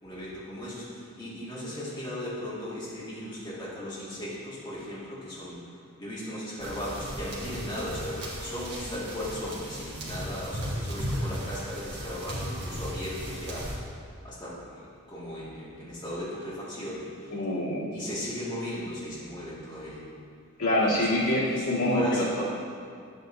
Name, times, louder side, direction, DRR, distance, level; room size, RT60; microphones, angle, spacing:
voice 1, 0.0-5.6 6.0-13.8 14.2-17.4 17.9-20.0 20.8-22.3, left 1 dB, 20° left, -9 dB, 1.8 m, -37 dB
sound 1, 6.6-13.7, equal, 50° right, 1.6 m, -36 dB
voice 2, 17.3-17.8 20.6-22.4, left 1 dB, 90° left, -7 dB, 1.9 m, -25 dB
9.4 x 8.3 x 2.6 m, 2.3 s
head